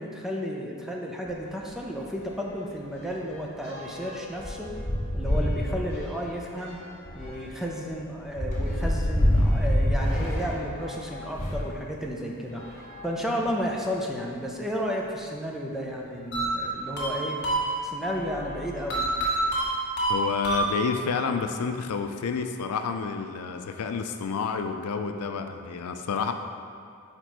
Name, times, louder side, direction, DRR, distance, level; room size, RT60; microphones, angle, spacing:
voice 1, 0.0-4.7 5.1-6.8 7.1-17.4 17.8-19.1, equal, ahead, -1 dB, 0.5 m, -33 dB
sound 1, 1.3-1.4 1.8-1.9 2.3-11.7 12.5-13.8 14.5-14.6 14.8-14.9 16.6-16.8 17.4-17.6 18.0-19.3, equal, 35° left, 1.5 m, -29 dB
sound 2, 16.3-18.1 18.9-21.2, right 2 dB, 50° left, 1.2 m, -27 dB
voice 2, 20.1-26.3, left 5 dB, 85° left, 6 dB, 0.4 m, -29 dB
5.0 x 4.4 x 4.6 m, 2.3 s
head